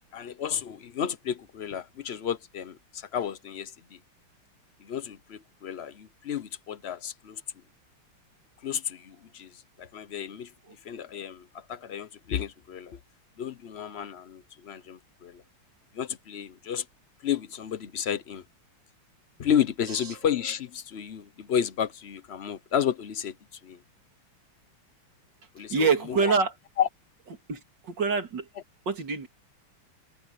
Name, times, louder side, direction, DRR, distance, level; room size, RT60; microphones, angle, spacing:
voice 1, 0.1-4.0 4.8-7.4 8.6-10.5 10.8-13.0 13.4-15.4 15.9-16.8 17.2-18.4 19.4-23.8 25.5-26.4 26.8-26.9 28.5-28.6, left 8 dB, 85° left, 0.5 m, -32 dB
voice 2, 25.7-26.5 27.5-27.6 28.0-28.4 28.9-29.3, right 5 dB, 55° right, 3.2 m, -24 dB
omnidirectional pair, 2.3 m